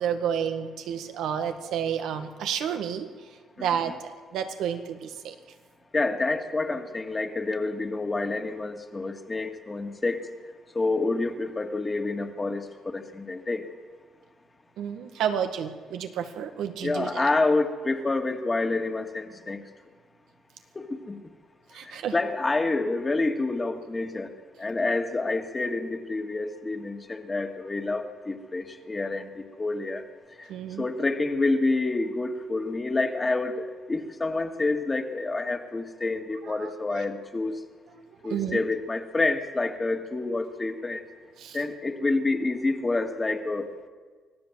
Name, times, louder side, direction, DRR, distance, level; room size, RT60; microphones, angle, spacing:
voice 1, 0.0-3.1 3.6-3.9 4.3-5.4 14.8-17.2 21.7-22.1 30.5-30.9 36.5-37.0 38.3-38.6 41.4-41.6, right 8 dB, 85° right, 6 dB, 1.9 m, -30 dB
voice 2, 3.6-3.9 5.9-10.3 10.7-13.7 16.8-19.6 20.8-21.2 21.8-24.3 24.6-30.0 30.4-30.5 30.8-37.6 38.2-41.1 41.5-43.7, left 3 dB, 25° left, 5 dB, 2.2 m, -28 dB
25.0 x 16.5 x 7.6 m, 1.5 s
cardioid pair, 90°, 0 cm